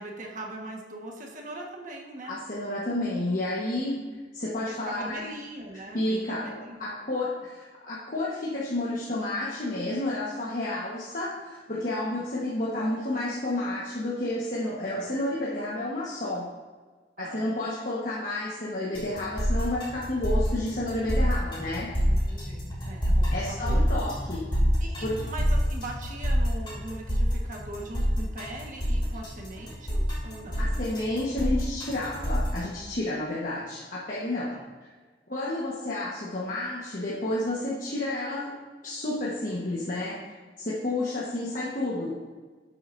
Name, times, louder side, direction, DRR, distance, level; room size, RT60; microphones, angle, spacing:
voice 1, 0.0-2.4 4.0-4.2 4.6-6.9 12.1-12.2 17.2-17.5 22.0-23.9 24.8-30.7 33.1-33.2 34.5-34.7, right 2 dB, 45° right, 0 dB, 1.4 m, -41 dB
voice 2, 2.2-4.0 4.3-5.2 5.9-7.6 7.8-16.5 17.2-21.9 23.3-24.5 25.0-25.2 30.6-34.6 35.3-38.5 38.8-40.2 40.6-42.2, left 1 dB, 50° left, -6 dB, 1.3 m, -30 dB
sound 1, 18.9-32.6, equal, 25° left, 2.6 m, -26 dB
11.5 x 7.8 x 2.6 m, 1.4 s
head